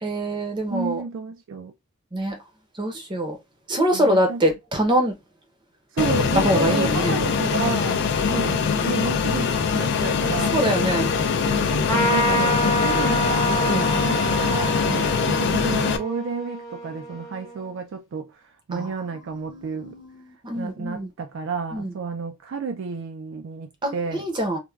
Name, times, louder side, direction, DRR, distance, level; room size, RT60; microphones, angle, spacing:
voice 1, 0.0-1.0 2.1-2.4 2.8-3.4 3.7-5.2 6.4-7.2 10.5-11.1 13.7-13.9 14.9-15.1 18.7-18.9 19.3-21.1 21.7-21.9 23.8-24.6, right 1 dB, 20° right, 0.6 m, -24 dB
voice 2, 0.7-1.7 3.9-4.4 5.9-8.0 8.3-10.6 11.5-14.9 15.2-20.0 20.5-24.2, right 5 dB, 60° right, 0.3 m, -31 dB
Fixed-wing aircraft airplane, 6.0-16.0, left 6 dB, 50° left, 0.3 m, -23 dB
Trumpet, 11.9-17.7, equal, 15° left, 0.7 m, -27 dB
3.2 x 2.2 x 2.3 m
head